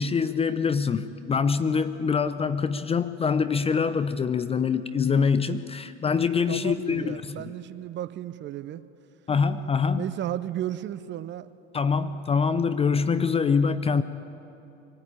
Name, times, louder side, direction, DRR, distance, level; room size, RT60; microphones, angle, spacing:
voice 1, 0.0-7.5 9.3-10.1 11.7-14.0, left 5 dB, 15° left, 12 dB, 0.6 m, -24 dB
voice 2, 6.5-8.8 9.9-11.5, right 12 dB, 30° right, 15 dB, 0.7 m, -34 dB
24.0 x 14.5 x 8.6 m, 2.8 s
hypercardioid pair, 90°, 36 cm